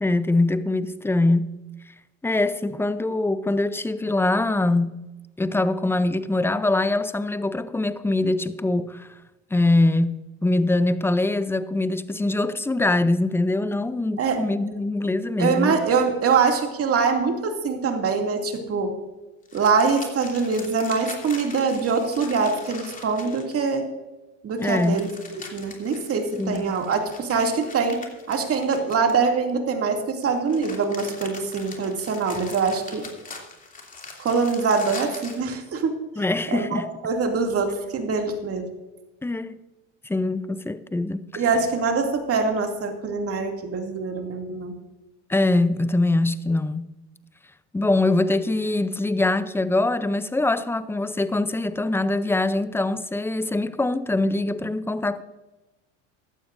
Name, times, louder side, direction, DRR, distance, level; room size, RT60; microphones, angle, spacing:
voice 1, 0.0-1.5 2.2-5.0 5.4-9.1 9.5-15.8 24.6-25.0 26.4-26.7 36.2-36.9 39.2-39.6 40.0-41.4 45.3-46.9 47.7-55.2, left 2 dB, 5° left, 0.6 m, -23 dB
voice 2, 15.4-18.9 19.5-23.9 24.4-28.0 28.3-33.1 34.2-35.9 36.5-38.6 41.4-44.7, right 5 dB, 40° right, 2.6 m, -24 dB
sound 1, 19.5-23.7 24.6-29.5 30.2-35.5, left 3 dB, 20° left, 2.9 m, -41 dB
16.0 x 12.0 x 2.6 m
supercardioid pair, 95°, 36 cm